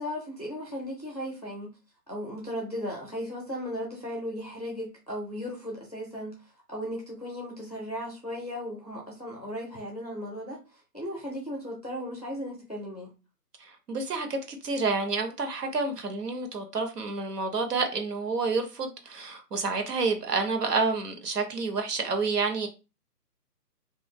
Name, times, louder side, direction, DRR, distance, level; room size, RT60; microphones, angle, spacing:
voice 1, 0.0-1.7 2.1-6.3 6.7-10.6 10.9-13.1, equal, 25° left, 0.5 m, -36 dB
voice 2, 13.6-22.7, right 4 dB, 70° right, 0.9 m, -29 dB
3.0 x 2.5 x 2.2 m
hypercardioid pair, 155°, 49 cm